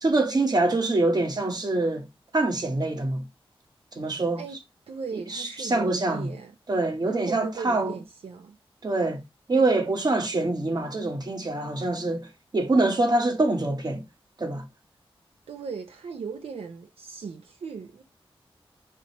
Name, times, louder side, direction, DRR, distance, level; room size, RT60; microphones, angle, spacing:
voice 1, 0.0-2.1 2.3-3.2 4.0-4.4 5.3-6.3 6.7-7.9 8.8-9.2 9.5-12.3 12.5-14.0 14.4-14.7, right 2 dB, 45° right, 1.1 m, -25 dB
voice 2, 4.9-6.5 7.1-8.6 15.5-18.0, right 5 dB, 85° right, 0.6 m, -38 dB
4.8 x 3.0 x 2.9 m
cardioid pair, 55°, 10 cm